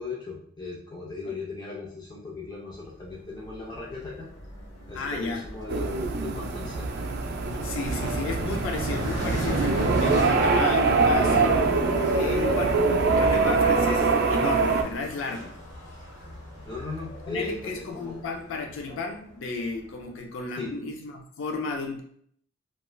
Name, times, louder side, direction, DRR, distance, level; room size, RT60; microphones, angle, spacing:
voice 1, 0.0-4.3 4.9-5.9 6.2-6.9 16.6-18.2 20.6-20.7, left 3 dB, 20° left, -5 dB, 0.4 m, -37 dB
sound 1, 2.7-20.1, equal, 60° left, 1.0 m, -41 dB
voice 2, 4.9-5.5 7.6-15.6 17.3-22.0, left 4 dB, 85° left, 3 dB, 0.4 m, -33 dB
sound 2, 5.7-14.8, right 3 dB, 55° right, 0.3 m, -23 dB
3.0 x 2.3 x 2.2 m, 0.63 s
head